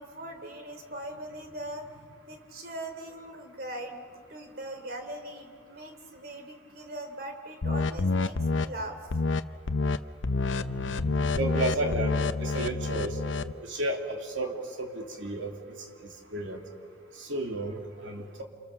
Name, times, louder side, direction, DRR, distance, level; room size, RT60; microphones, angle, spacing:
voice 1, 0.0-9.0, right 1 dB, 50° right, 5 dB, 3.4 m, -40 dB
sound 1, 7.6-8.7 9.1-9.4 9.7-10.0 10.2-13.5, left 3 dB, 85° left, 0.8 m, -28 dB
voice 2, 10.7-13.2 13.6-15.5 16.3-16.6 17.2-18.4, right 2 dB, 85° right, 2 dB, 3.1 m, -33 dB
30.0 x 27.5 x 7.1 m, 2.1 s
head